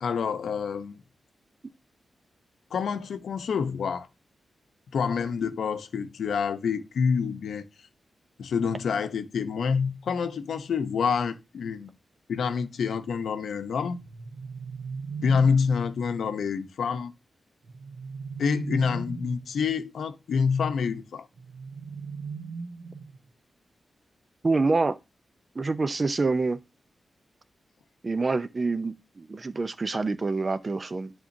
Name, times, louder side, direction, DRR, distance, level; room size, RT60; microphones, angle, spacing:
voice 1, 0.0-1.0 2.7-4.1 4.9-7.7 8.4-11.9 12.3-14.0 15.2-17.1 18.4-21.3, left 6 dB, 80° left, 0.7 m, -27 dB
sound 1, 14.0-15.8 17.6-19.5 21.4-23.3, right 5 dB, 75° right, 0.8 m, -38 dB
voice 2, 24.4-25.0 25.6-26.6 28.0-31.1, right 3 dB, 30° right, 0.4 m, -26 dB
10.0 x 3.6 x 2.6 m
wide cardioid pair, 155°, 0 cm